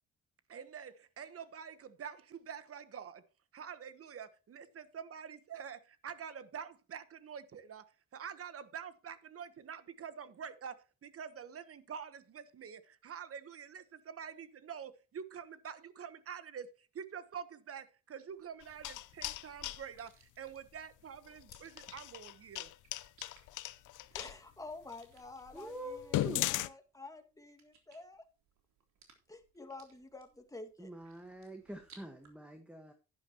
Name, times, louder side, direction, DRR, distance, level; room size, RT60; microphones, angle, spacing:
voice 1, 0.5-3.2 3.5-22.7, right 7 dB, 50° right, 1.2 m, -47 dB
sound 1, 18.3-32.3, right 6 dB, 65° right, 3.5 m, -66 dB
sound 2, 18.6-19.8 21.4-24.3 24.9-25.0 25.5-25.6 26.0-26.7, left 15 dB, 80° left, 0.7 m, -37 dB
voice 2, 24.1-28.2 29.3-30.9, left 3 dB, 10° left, 2.0 m, -49 dB
voice 3, 25.5-26.4 30.8-32.9, right 1 dB, 5° right, 1.5 m, -45 dB
11.0 x 11.0 x 3.0 m
cardioid pair, 90°, 30 cm